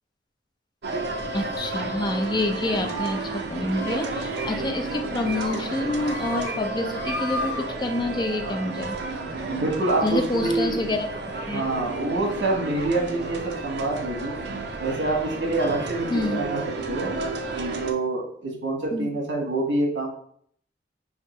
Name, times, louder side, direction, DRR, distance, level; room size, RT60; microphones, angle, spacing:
sound 1, 0.8-17.9, right 3 dB, 65° right, 0.5 m, -32 dB
voice 1, 1.3-9.0 10.0-11.1 11.5-11.6 16.1-16.4 18.9-19.1, left 2 dB, 25° left, 5 dB, 0.5 m, -27 dB
sound 2, 2.8-3.4 3.8-4.0 4.3-4.5 4.9-5.6 5.9-6.5 6.8-7.6, left 3 dB, 75° left, 0.6 m, -35 dB
voice 2, 9.5-10.9 11.5-14.4 14.8-16.6 16.9-17.1 17.5-20.1, right 2 dB, 85° right, 0 dB, 1.2 m, -26 dB
3.5 x 2.5 x 4.2 m, 0.63 s
head